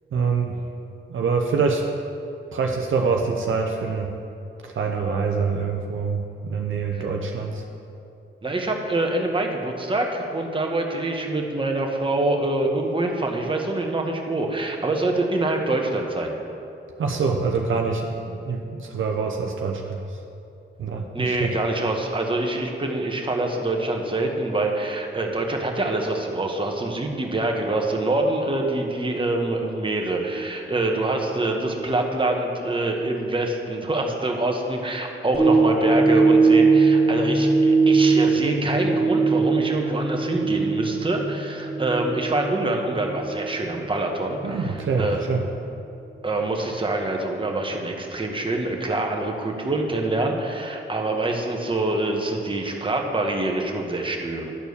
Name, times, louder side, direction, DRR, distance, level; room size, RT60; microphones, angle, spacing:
voice 1, 0.1-0.6 1.1-1.8 2.5-4.1 4.6-7.6 17.0-20.0 20.8-21.5 44.4-45.4, right 5 dB, 70° right, 1 dB, 0.8 m, -25 dB
voice 2, 8.4-16.3 21.1-45.2 46.2-54.5, right 2 dB, 25° right, 1 dB, 1.4 m, -25 dB
sound 1, 35.3-43.7 44.2-44.3, right 4 dB, 50° left, 2.5 m, -20 dB
11.0 x 4.5 x 7.0 m, 2.7 s
cardioid pair, 60°, 21 cm